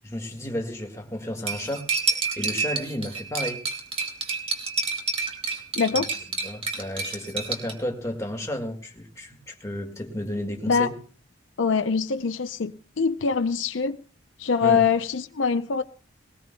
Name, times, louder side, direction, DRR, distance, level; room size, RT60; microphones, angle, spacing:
voice 1, 0.1-3.6 5.9-6.0 6.4-11.0 14.6-14.8, left 1 dB, 15° left, 1.8 m, -32 dB
Cutlery silverware, 1.5-7.7, right 4 dB, 30° right, 2.4 m, -29 dB
voice 2, 5.7-6.1 10.7-10.9 11.6-14.0 14.4-15.8, left 5 dB, 70° left, 0.6 m, -24 dB
20.0 x 19.0 x 2.2 m
head